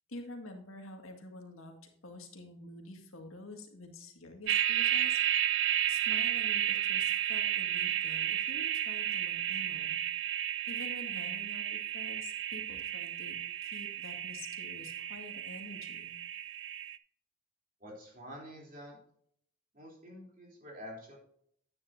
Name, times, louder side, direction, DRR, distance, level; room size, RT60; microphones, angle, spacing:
voice 1, 0.1-5.6 5.9-10.3 10.7-13.4 13.6-16.1, left 2 dB, 85° left, 3 dB, 1.9 m, -48 dB
sound 1, 4.5-17.0, right 11 dB, 60° right, 0.4 m, -32 dB
voice 2, 17.8-19.0 19.7-21.2, equal, 40° right, -2 dB, 3.2 m, -48 dB
9.8 x 9.3 x 2.6 m, 0.65 s
head